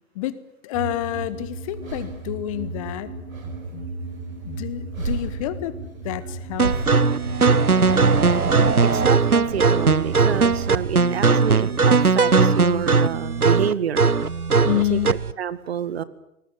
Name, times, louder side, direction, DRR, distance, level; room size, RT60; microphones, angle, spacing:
voice 1, 0.1-3.2 3.4-3.9 4.4-5.8 6.0-7.1 14.6-15.2, left 14 dB, 25° left, 16 dB, 1.1 m, -29 dB
sound 1, 0.7-11.0, right 3 dB, 20° right, 6.4 m, -36 dB
sound 2, 0.9-14.0, right 4 dB, 70° right, 5.1 m, -38 dB
sound 3, 6.6-15.3, right 4 dB, 90° right, 1.0 m, -19 dB
voice 2, 8.8-14.1 14.9-16.0, right 8 dB, 45° right, 16 dB, 1.7 m, -28 dB
27.5 x 20.5 x 9.2 m, 0.80 s
figure-of-eight pair, 125°, 43 cm